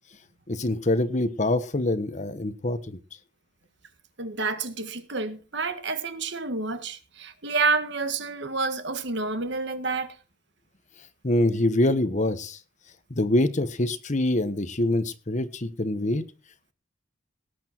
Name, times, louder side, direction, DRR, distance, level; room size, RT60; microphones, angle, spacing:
voice 1, 0.5-3.0 11.2-12.6 13.2-16.2, left 1 dB, 40° left, 1.1 m, -25 dB
voice 2, 4.2-10.2, right 4 dB, 60° right, 1.7 m, -29 dB
18.5 x 8.5 x 4.5 m
head